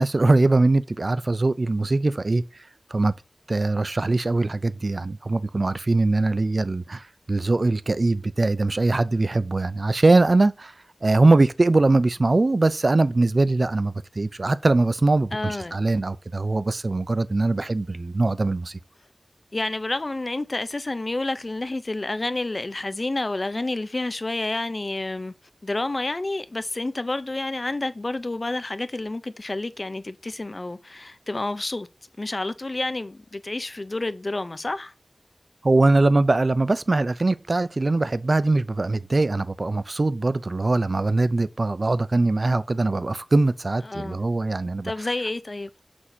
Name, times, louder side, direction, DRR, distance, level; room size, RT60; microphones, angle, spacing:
voice 1, 0.0-2.4 2.9-3.1 3.5-10.7 11.0-18.8 35.6-44.9, right 2 dB, 60° right, 0.4 m, -22 dB
voice 2, 15.3-15.8 19.5-25.3 25.6-31.9 32.2-34.9 43.9-44.2 44.8-45.7, left 2 dB, 50° left, 0.5 m, -29 dB
6.0 x 6.0 x 2.6 m
wide cardioid pair, 60°, 0 cm